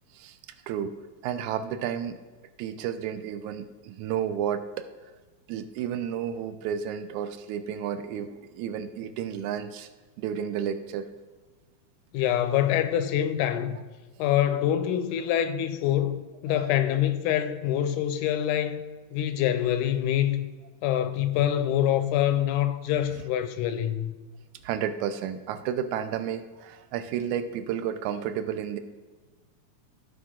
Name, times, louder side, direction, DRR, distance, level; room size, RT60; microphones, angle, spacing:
voice 1, 1.2-2.2 2.6-4.9 5.5-9.9 10.2-11.1 16.5-16.8 24.6-28.8, right 9 dB, 80° right, 1.9 m, -32 dB
voice 2, 12.1-13.8 14.2-18.8 19.1-20.5 20.8-24.1, left 11 dB, 90° left, 2.1 m, -25 dB
15.0 x 5.1 x 3.7 m
omnidirectional pair, 3.5 m